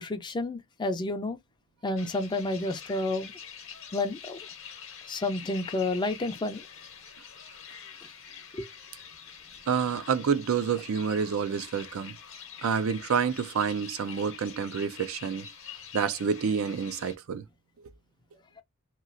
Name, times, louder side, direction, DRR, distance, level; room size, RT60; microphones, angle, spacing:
voice 1, 0.0-1.4 1.8-3.3 3.9-4.4 5.1-6.6 8.5-8.7, left 2 dB, 20° left, 0.4 m, -30 dB
sound 1, 2.0-17.2, left 7 dB, 65° left, 0.8 m, -46 dB
voice 2, 9.7-12.2 12.6-15.5 15.9-17.4, right 6 dB, 70° right, 0.4 m, -28 dB
3.0 x 2.3 x 2.5 m
head